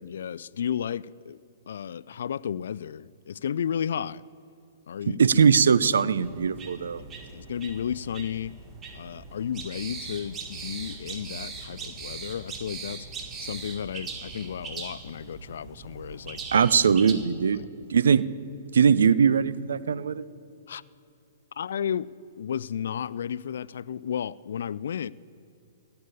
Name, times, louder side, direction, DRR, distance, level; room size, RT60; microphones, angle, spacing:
voice 1, 0.0-1.4 1.7-4.2 4.9-5.2 7.0-8.5 8.9-13.1 13.4-16.4 20.7-20.8 21.6-22.1 22.4-25.1, left 8 dB, 70° left, 0.3 m, -33 dB
voice 2, 5.1-7.0 16.5-17.6 17.9-18.3 18.7-20.2, right 6 dB, 80° right, 0.5 m, -21 dB
sound 1, 6.2-17.1, right 4 dB, 20° right, 1.7 m, -40 dB
16.5 x 6.8 x 8.2 m
hypercardioid pair, 125°, 0 cm